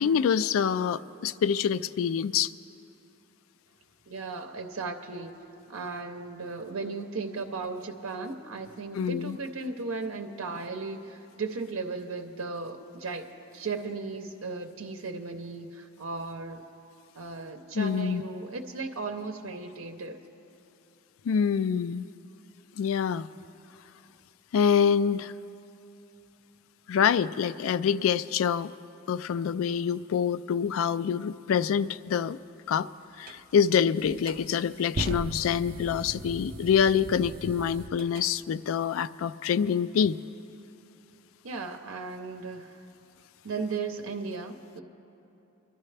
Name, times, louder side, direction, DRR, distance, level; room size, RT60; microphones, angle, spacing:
voice 1, 0.0-2.5 8.9-9.4 17.7-18.2 21.3-22.0 22.8-23.3 24.5-25.3 26.9-28.7 29.1-32.4 32.7-32.9 33.2-40.2, left 7 dB, 80° left, 17 dB, 0.3 m, -26 dB
voice 2, 4.1-5.4 5.7-13.3 13.5-16.6 17.2-20.2 41.4-42.7 43.4-44.8, right 4 dB, 90° right, 4 dB, 0.7 m, -36 dB
sound 1, 33.2-33.4 34.0-38.3, right 2 dB, 45° right, 0.5 m, -38 dB
25.0 x 11.5 x 3.3 m, 2.8 s
head